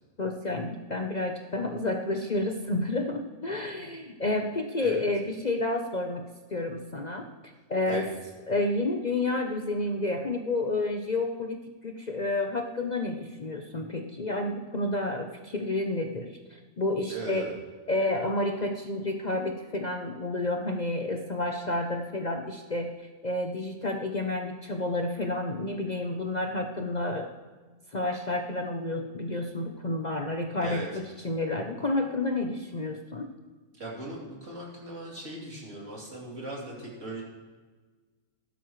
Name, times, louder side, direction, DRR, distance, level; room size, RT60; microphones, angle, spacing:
voice 1, 0.2-6.2 6.5-8.1 8.5-17.4 17.9-27.3 27.9-33.3, left 2 dB, 40° left, 3 dB, 0.7 m, -30 dB
voice 2, 17.1-17.6 30.6-30.9 33.8-37.2, right 2 dB, 55° right, -4 dB, 3.4 m, -39 dB
15.5 x 12.0 x 3.2 m, 1.4 s
omnidirectional pair, 1.5 m